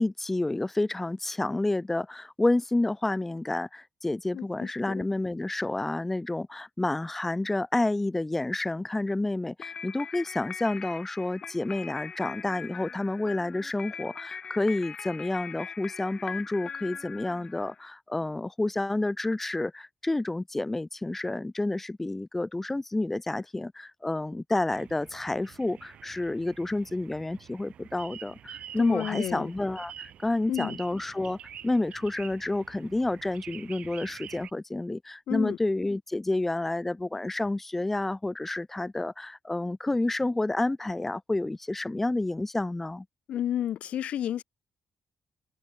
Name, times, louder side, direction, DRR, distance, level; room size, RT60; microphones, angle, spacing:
voice 1, 0.0-31.4 31.6-43.0, left 2 dB, 10° left, 1.5 m, -29 dB
voice 2, 4.3-5.0 28.8-29.5 30.5-30.8 35.3-35.6 43.3-44.4, left 10 dB, 80° left, 3.4 m, -31 dB
sound 1, 9.6-17.9, left 6 dB, 40° left, 2.8 m, -41 dB
sound 2, 24.7-34.5, right 10 dB, 65° right, 3.2 m, -47 dB
open air
wide cardioid pair, 175°, 2 cm